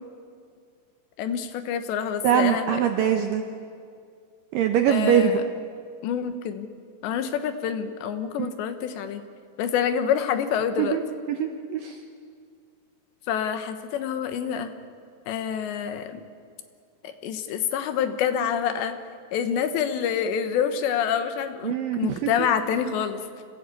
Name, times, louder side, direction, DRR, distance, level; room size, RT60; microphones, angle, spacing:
voice 1, 1.2-2.8 4.9-5.3 6.0-6.7 7.0-9.2 9.6-11.0 13.3-14.7 15.3-16.2 17.0-18.9 19.3-23.4, left 8 dB, 80° left, 9 dB, 3.4 m, -27 dB
voice 2, 2.2-3.4 4.5-5.4 8.4-8.5 10.8-11.0 11.3-12.0 21.6-22.3, right 8 dB, 80° right, 5 dB, 2.1 m, -23 dB
26.0 x 16.0 x 8.4 m, 2.2 s
omnidirectional pair, 5.0 m